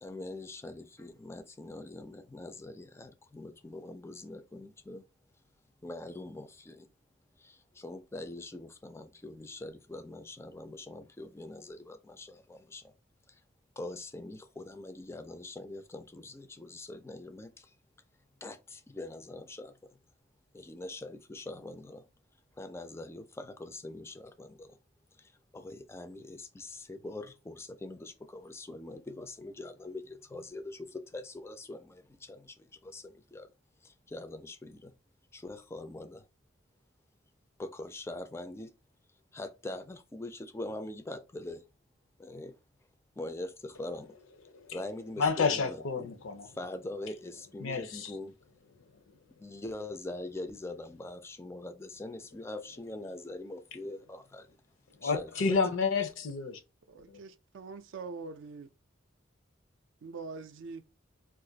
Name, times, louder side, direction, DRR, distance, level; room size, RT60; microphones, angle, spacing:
voice 1, 0.0-5.0 5.8-6.9 7.4-12.9 13.3-13.4 13.8-17.8 18.4-19.7 20.5-22.0 22.6-24.8 25.2-33.5 33.8-34.9 35.3-36.2 37.6-38.7 39.3-41.6 42.2-42.6 43.2-44.2 44.7-46.1 46.4-48.3 49.4-54.6 55.0-55.6, left 2 dB, 15° left, 0.3 m, -43 dB
voice 2, 45.2-46.5 47.6-48.1 55.0-56.6, left 4 dB, 75° left, 0.5 m, -30 dB
voice 3, 56.9-58.7 60.0-60.8, right 4 dB, 65° right, 0.4 m, -43 dB
2.5 x 2.4 x 3.8 m
head